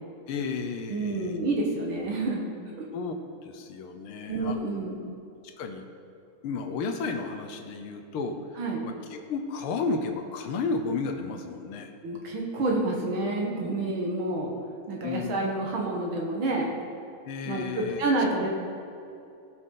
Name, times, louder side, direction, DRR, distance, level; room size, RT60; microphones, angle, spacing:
voice 1, 0.3-1.3 2.9-3.1 3.4-4.6 5.4-5.8 6.4-8.4 8.8-11.9 15.0-15.4 17.3-18.1, left 4 dB, 90° left, 5 dB, 1.7 m, -32 dB
voice 2, 0.9-2.5 2.8-2.9 4.3-5.0 8.6-8.8 12.0-14.5 14.9-16.7 17.5-18.6, right 2 dB, 70° right, -1 dB, 2.0 m, -28 dB
17.0 x 6.0 x 3.8 m, 2.6 s
omnidirectional pair, 2.3 m